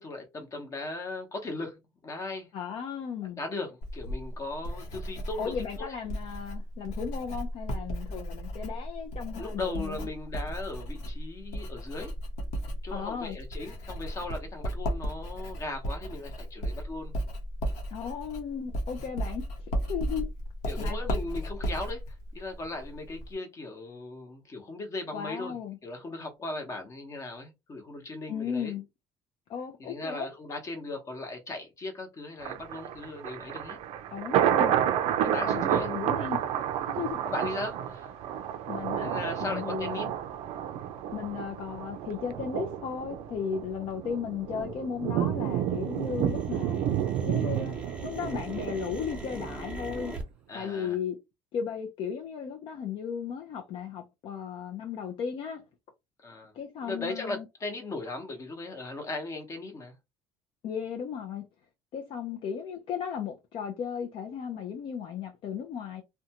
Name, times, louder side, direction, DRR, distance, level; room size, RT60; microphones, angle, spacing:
voice 1, 0.0-2.5 3.4-5.5 5.9-6.0 9.4-12.1 12.8-17.1 20.7-22.0 22.3-25.5 25.8-28.7 29.8-33.8 35.2-35.9 36.9-38.1 39.0-40.1 50.5-51.0 56.2-56.5 56.8-59.9, left 2 dB, 25° left, 0.8 m, -38 dB
voice 2, 2.5-3.4 5.4-10.1 12.9-13.4 17.9-19.5 19.9-20.3 20.8-21.0 25.1-25.8 28.3-28.9 29.5-30.3 34.1-34.8 35.3-36.4 36.9-37.2 38.7-39.1 39.4-40.1 41.1-46.9 47.3-47.8 48.0-50.1 50.5-51.2 51.5-55.6 56.5-57.5 60.6-61.5 61.9-66.0, left 7 dB, 50° left, 0.5 m, -35 dB
Writing, 3.8-23.3, equal, 75° left, 0.9 m, -35 dB
Thunder, 32.4-49.5 49.9-50.0, right 10 dB, 65° right, 0.4 m, -30 dB
sound 1, 43.1-45.1 45.4-50.2, right 3 dB, 10° right, 0.7 m, -42 dB
2.5 x 2.2 x 2.8 m
cardioid pair, 150°, 11 cm